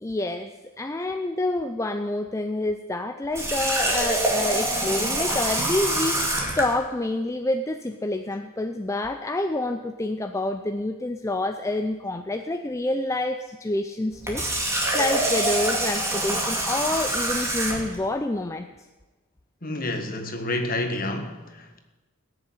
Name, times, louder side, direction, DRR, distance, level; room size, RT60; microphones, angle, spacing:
voice 1, 0.0-0.5 0.8-14.5 14.9-18.7, left 2 dB, 15° left, 0.4 m, -28 dB
Water tap faucet, 3.3-6.7 14.1-18.0, right 1 dB, 10° right, 2.2 m, -25 dB
voice 2, 19.6-21.8, left 2 dB, 40° left, 1.5 m, -29 dB
17.5 x 6.9 x 9.1 m
head